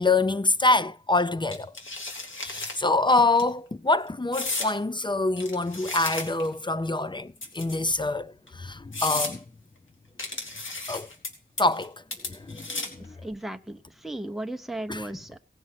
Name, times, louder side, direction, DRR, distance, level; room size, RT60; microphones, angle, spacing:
voice 1, 0.0-1.7 2.4-9.4 10.9-11.1 11.6-12.0 12.2-13.2 14.9-15.1, left 2 dB, 25° left, 0.5 m, -25 dB
sound 1, 1.5-2.8 3.2-3.4 4.3-4.7 5.4-6.5 7.4-8.0 8.5-8.6 8.9-9.3 10.2-11.3 11.6-11.9 12.1-13.0, left 2 dB, 85° left, 2.6 m, -33 dB
voice 2, 13.2-15.4, right 1 dB, ahead, 0.8 m, -36 dB
17.5 x 6.3 x 5.7 m
wide cardioid pair, 80°, 20 cm